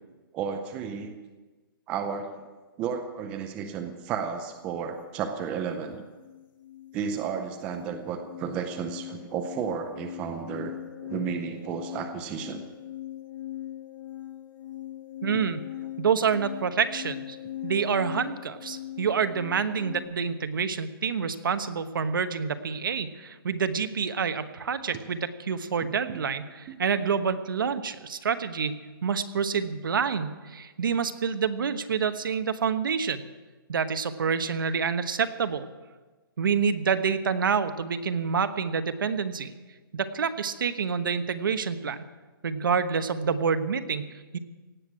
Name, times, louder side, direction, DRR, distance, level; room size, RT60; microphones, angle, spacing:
voice 1, 0.3-1.1 1.9-2.5 2.8-6.0 6.9-10.7 11.0-12.6 26.1-26.2 26.7-26.8, right 7 dB, 10° right, 5 dB, 0.5 m, -33 dB
sound 1, 5.2-5.4 5.6-20.0, left 13 dB, 60° left, 2.7 m, -41 dB
voice 2, 15.2-15.6 16.0-17.4 17.6-33.2 33.7-35.7 36.4-39.5 39.9-42.0 42.4-44.4, right 6 dB, 65° right, 10 dB, 1.1 m, -27 dB
17.0 x 8.0 x 9.0 m, 1.3 s
hypercardioid pair, 175°, 12 cm